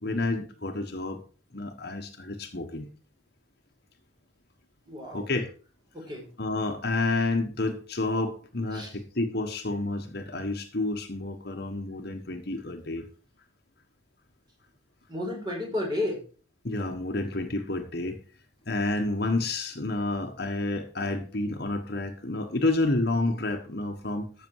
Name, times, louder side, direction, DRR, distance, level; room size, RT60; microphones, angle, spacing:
voice 1, 0.0-1.2 1.5-2.9 5.1-5.5 6.4-13.0 16.6-18.2 18.7-24.3, left 2 dB, 55° left, 4 dB, 1.4 m, -29 dB
voice 2, 4.8-5.3 5.9-6.3 8.7-8.9 15.1-16.2, left 1 dB, 25° right, 0 dB, 5.1 m, -32 dB
13.5 x 6.8 x 4.7 m, 0.37 s
head